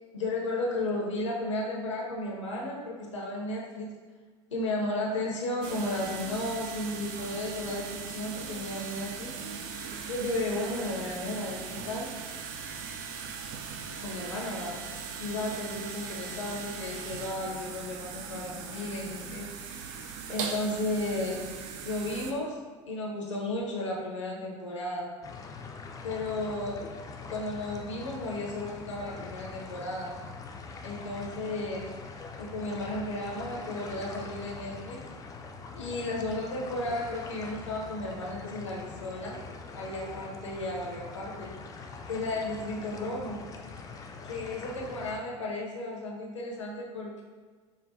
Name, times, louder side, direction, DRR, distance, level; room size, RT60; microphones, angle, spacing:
voice 1, 0.1-3.9 4.5-9.3 10.1-12.1 14.0-14.8 15.2-19.5 20.3-21.5 21.8-22.6 22.9-25.1 26.0-26.9 27.3-30.1 30.8-31.9 32.4-35.0 35.7-39.4 39.7-41.5 42.1-43.4 44.2-47.2, left 2 dB, 85° left, -2 dB, 0.7 m, -34 dB
sound 1, 5.6-22.3, right 6 dB, 55° right, 0.4 m, -39 dB
sound 2, 25.2-45.2, left 4 dB, 20° left, 0.4 m, -43 dB
5.0 x 2.2 x 2.6 m, 1.5 s
figure-of-eight pair, 70°, 15 cm